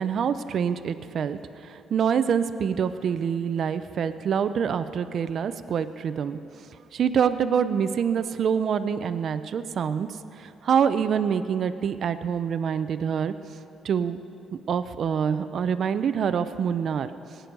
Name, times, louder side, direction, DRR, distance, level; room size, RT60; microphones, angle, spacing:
voice 1, 0.0-6.4 6.9-10.1 10.4-13.3 13.8-14.2 14.7-17.1, right 7 dB, 60° right, 11 dB, 0.5 m, -26 dB
18.0 x 9.0 x 5.3 m, 2.6 s
cardioid pair, 90°, 0 cm